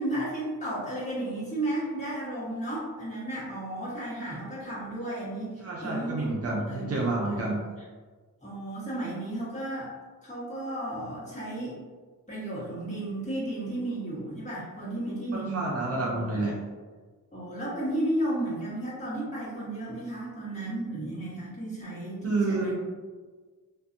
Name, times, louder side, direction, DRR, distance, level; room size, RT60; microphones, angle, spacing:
voice 1, 0.0-7.5 8.4-9.9 10.2-11.8 12.3-16.0 16.3-16.5 17.3-22.8, right 1 dB, 20° left, -10 dB, 1.3 m, -33 dB
voice 2, 5.6-7.6 15.3-16.5 22.2-22.8, right 2 dB, 45° right, -3 dB, 0.5 m, -29 dB
2.6 x 2.2 x 2.6 m, 1.4 s
cardioid pair, 95°, 36 cm